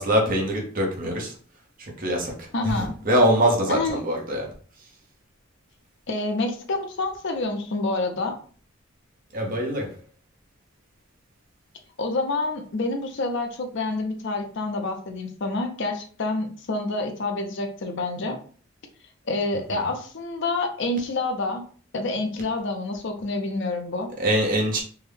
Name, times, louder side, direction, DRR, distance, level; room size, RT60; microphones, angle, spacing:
voice 1, 0.0-1.3 1.8-4.5 9.3-9.9 19.7-19.8 24.2-24.8, equal, 40° right, 1 dB, 0.9 m, -23 dB
voice 2, 2.5-3.0 3.7-4.0 6.1-8.4 12.0-18.4 19.3-21.6 21.9-24.1, left 2 dB, 60° left, 5 dB, 0.5 m, -28 dB
3.5 x 2.2 x 3.3 m, 0.43 s
head